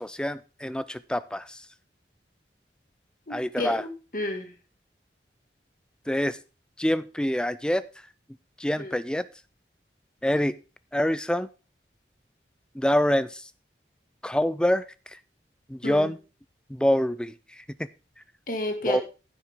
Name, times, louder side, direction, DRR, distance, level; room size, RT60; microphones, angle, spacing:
voice 1, 0.0-1.7 3.3-3.8 6.1-6.4 6.8-7.8 8.6-9.3 10.2-10.6 10.9-11.5 12.7-13.5 14.2-15.2 15.7-16.2 16.7-17.9 18.9-19.0, equal, 5° left, 15 dB, 0.4 m, -26 dB
voice 2, 3.3-4.5 8.8-8.9 15.8-16.1 18.5-19.0, left 1 dB, 50° left, 5 dB, 1.9 m, -32 dB
10.5 x 8.7 x 3.6 m, 0.33 s
head